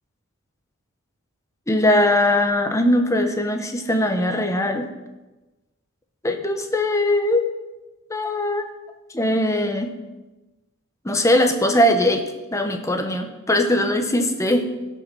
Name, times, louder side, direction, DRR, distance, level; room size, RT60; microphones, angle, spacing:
voice 1, 1.7-4.9 6.2-7.5 8.1-8.7 9.1-10.0 11.0-14.7, left 1 dB, 15° left, 6 dB, 1.0 m, -20 dB
17.0 x 5.8 x 6.2 m, 1.1 s
head